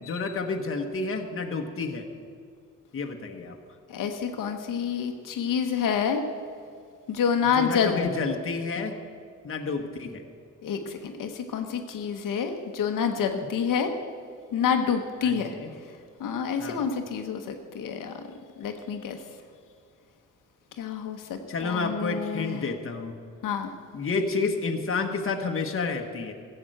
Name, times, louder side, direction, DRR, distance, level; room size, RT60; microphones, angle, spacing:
voice 1, 0.0-2.1 2.9-3.6 7.5-9.0 9.4-10.2 15.2-15.7 16.6-16.9 21.5-23.1 23.9-26.3, left 4 dB, 40° left, 4 dB, 1.3 m, -30 dB
voice 2, 3.9-6.2 7.1-8.0 10.6-13.9 14.5-15.5 16.2-18.1 18.6-19.2 20.8-21.4 21.6-22.6 23.4-23.7, left 7 dB, 80° left, 5 dB, 1.1 m, -28 dB
15.0 x 7.9 x 7.8 m, 2.2 s
cardioid pair, 125°, 32 cm